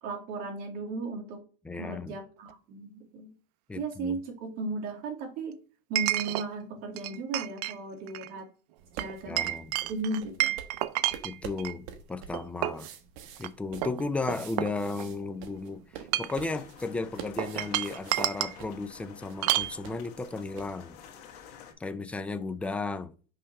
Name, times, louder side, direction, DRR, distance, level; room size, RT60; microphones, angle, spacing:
voice 1, 0.0-1.4 1.8-3.3 3.8-5.6 5.9-8.5 8.9-9.4 9.9-10.5, right 3 dB, 50° right, 2.2 m, -36 dB
voice 2, 1.6-2.2 3.7-4.2 9.3-9.7 11.2-12.9 13.4-21.0 21.8-23.1, left 3 dB, 5° left, 0.4 m, -34 dB
Chink clink, 2.5-2.6 6.0-6.5 7.0-7.8 8.1-8.3 9.0-11.8 12.3-12.9 13.4-13.5 13.8-15.2 15.9-16.5 17.4-18.6 19.4-19.7, right 15 dB, 90° right, 0.5 m, -30 dB
sound 1, 8.8-20.8, right 8 dB, 65° right, 1.1 m, -48 dB
sound 2, 16.3-21.7, left 8 dB, 85° left, 1.6 m, -50 dB
5.5 x 3.3 x 5.3 m
supercardioid pair, 150°, 20 cm